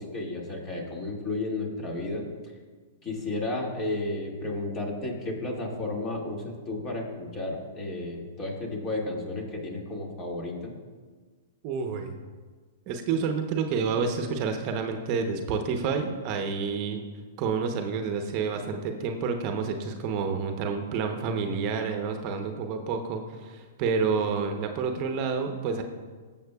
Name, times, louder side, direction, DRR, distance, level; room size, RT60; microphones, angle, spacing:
voice 1, 0.0-2.3 3.0-10.7, left 2 dB, 25° left, -1 dB, 2.2 m, -33 dB
voice 2, 11.6-12.2 12.9-17.0 17.4-25.8, right 5 dB, 40° right, 5 dB, 0.9 m, -29 dB
18.5 x 7.3 x 2.4 m, 1.5 s
hypercardioid pair, 120°, 0 cm